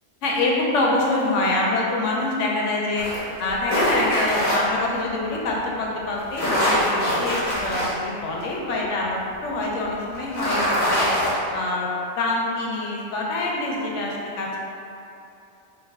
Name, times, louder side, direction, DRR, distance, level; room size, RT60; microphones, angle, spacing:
voice 1, 0.2-3.1 3.4-11.1 11.5-11.9 12.2-14.6, left 2 dB, 80° left, -3 dB, 0.9 m, -25 dB
sound 1, 3.0-4.5 6.2-7.9 8.4-8.5 10.1-11.3, equal, 50° left, 1.1 m, -23 dB
3.2 x 2.1 x 3.4 m, 2.7 s
omnidirectional pair, 1.2 m